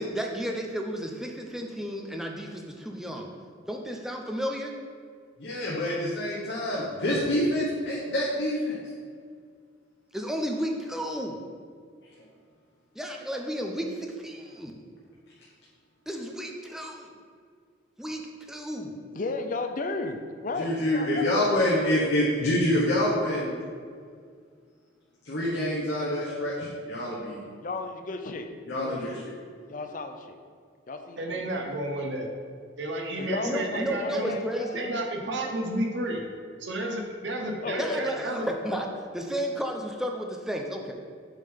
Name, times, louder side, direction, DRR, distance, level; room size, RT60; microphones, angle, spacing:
voice 1, 0.0-3.3 3.7-4.7 10.1-11.4 13.0-14.7 16.1-17.1 18.0-18.2 18.5-18.9 33.4-34.9 37.8-38.9 39.1-40.9, equal, ahead, 1 dB, 0.5 m, -32 dB
voice 2, 5.4-8.8 20.6-23.5 25.2-27.4 28.7-29.4, left 1 dB, 60° left, -6 dB, 1.0 m, -26 dB
voice 3, 19.1-21.6 27.6-28.5 28.8-29.2 29.7-30.4 30.9-31.7 33.2-34.9 35.4-35.5 37.6-38.3, left 3 dB, 40° left, 6 dB, 0.5 m, -34 dB
voice 4, 31.2-32.3 32.8-34.3 34.7-36.2 36.6-38.5, right 1 dB, 65° right, 1 dB, 0.9 m, -31 dB
7.3 x 3.8 x 5.1 m, 2.1 s
head